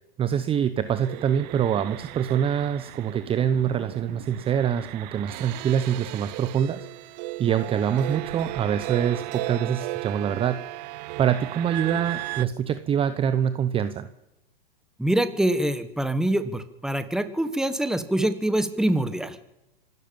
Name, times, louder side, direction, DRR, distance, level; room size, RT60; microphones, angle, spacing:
voice 1, 0.2-10.6 11.2-14.1, right 8 dB, 20° right, 12 dB, 0.9 m, -25 dB
sound 1, 0.9-12.5, right 19 dB, 45° right, 0.8 m, -36 dB
voice 2, 15.0-19.4, right 1 dB, ahead, 11 dB, 1.4 m, -25 dB
25.5 x 12.5 x 8.8 m, 0.93 s
hypercardioid pair, 130°, 29 cm